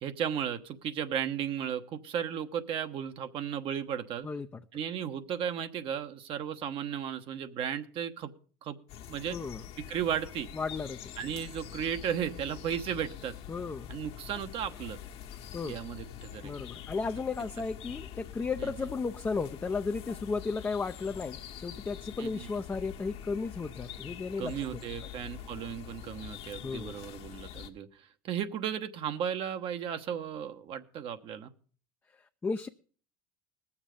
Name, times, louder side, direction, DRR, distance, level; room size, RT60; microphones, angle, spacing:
voice 1, 0.0-4.3 4.7-8.3 8.6-8.8 9.1-9.4 9.9-10.5 11.2-13.3 13.9-15.0 15.7-16.5 18.6-18.7 22.2-22.5 24.4-27.9 28.2-31.5, right 9 dB, 50° right, 8 dB, 1.1 m, -35 dB
voice 2, 4.2-4.6 9.3-9.6 10.5-11.0 13.5-13.9 15.5-15.8 16.4-24.8 26.6-27.0 32.1-32.7, left 4 dB, 20° left, 6 dB, 0.6 m, -34 dB
sound 1, 8.9-27.7, left 10 dB, 60° left, 1.5 m, -45 dB
19.5 x 7.2 x 5.1 m, 0.43 s
hypercardioid pair, 80°, 11 cm